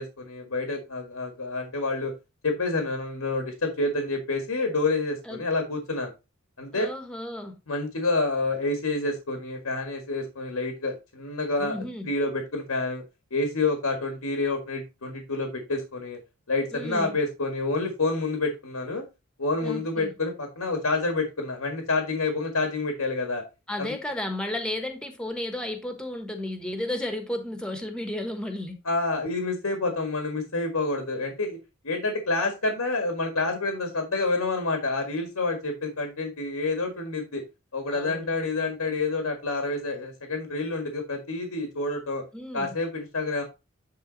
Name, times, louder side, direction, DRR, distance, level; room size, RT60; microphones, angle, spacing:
voice 1, 0.0-2.1 2.4-6.1 6.6-6.9 7.7-11.8 12.1-13.0 13.3-16.2 16.5-19.0 19.4-23.4 23.8-23.9 28.9-31.6 31.8-37.4 37.7-42.2 42.5-43.4, left 3 dB, 85° left, 1.7 m, -28 dB
voice 2, 6.7-7.6 11.6-12.1 16.7-17.2 19.6-20.1 23.7-28.8 37.9-38.4 42.3-42.8, left 1 dB, 5° left, 1.3 m, -33 dB
10.0 x 3.8 x 4.0 m
head